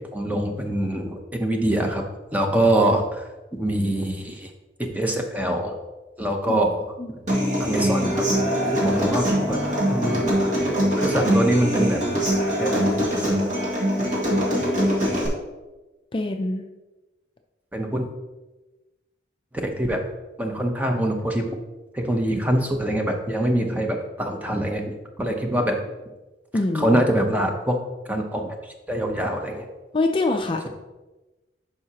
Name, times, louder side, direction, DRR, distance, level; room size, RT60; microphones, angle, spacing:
voice 1, 0.0-2.0 2.3-4.5 4.9-5.7 6.2-6.7 7.6-8.2 8.8-9.6 9.8-10.3 10.8-12.0 12.6-13.5 17.7-18.1 19.6-20.0 20.4-21.5 21.9-25.8 26.7-27.8 28.1-29.7, right 1 dB, 10° right, 3 dB, 0.7 m, -24 dB
Human voice / Acoustic guitar, 7.3-15.3, equal, 45° right, 1.9 m, -22 dB
voice 2, 16.1-16.7 26.5-27.0 29.9-30.7, left 2 dB, 30° left, 4 dB, 0.4 m, -24 dB
11.0 x 4.9 x 2.9 m, 1.1 s
head